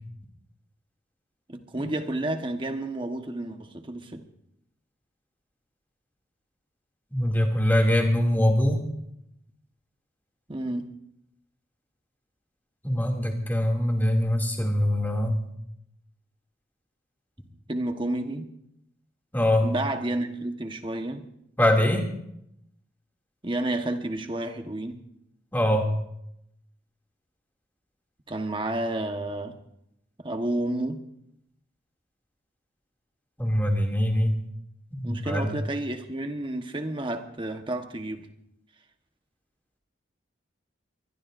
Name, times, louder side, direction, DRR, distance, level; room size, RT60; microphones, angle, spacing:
voice 1, 1.5-4.2 10.5-10.9 17.7-18.5 19.6-21.2 23.4-25.0 28.3-29.5 30.2-31.0 35.0-38.3, right 1 dB, 25° right, 6 dB, 1.2 m, -30 dB
voice 2, 7.1-8.8 12.8-15.4 19.3-19.7 21.6-22.1 25.5-25.9 33.4-34.4 34.9-35.5, left 1 dB, 10° left, 0 dB, 2.6 m, -23 dB
24.0 x 20.5 x 2.6 m, 0.77 s
head